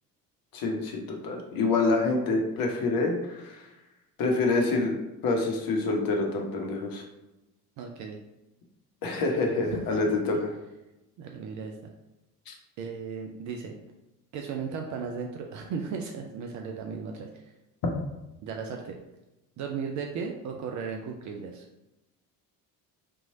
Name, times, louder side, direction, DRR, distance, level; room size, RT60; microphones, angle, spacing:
voice 1, 0.5-3.6 4.2-4.9 5.2-7.0 9.0-10.5 12.5-12.6, left 3 dB, 45° left, 1 dB, 0.9 m, -27 dB
voice 2, 7.8-8.2 9.7-10.4 11.2-11.8 12.8-13.7 14.3-17.5 18.4-19.0 19.6-21.7, right 5 dB, 40° right, 2 dB, 0.4 m, -36 dB
3.6 x 3.0 x 2.6 m, 0.97 s
figure-of-eight pair, 55°, 49 cm